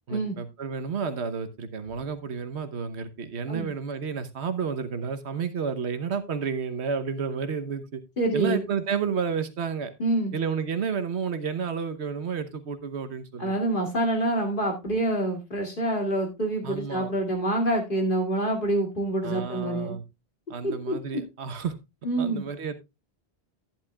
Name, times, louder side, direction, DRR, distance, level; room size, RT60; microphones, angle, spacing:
voice 1, 0.1-8.0 8.3-9.9 10.3-13.5 16.6-17.1 19.2-20.0 20.5-21.7 22.2-22.8, right 6 dB, 80° right, 10 dB, 1.3 m, -31 dB
voice 2, 8.2-8.6 10.0-10.3 13.4-19.9 20.6-21.0 22.0-22.4, right 1 dB, 50° left, 1 dB, 2.6 m, -26 dB
11.5 x 10.0 x 2.3 m, 0.23 s
omnidirectional pair, 1.1 m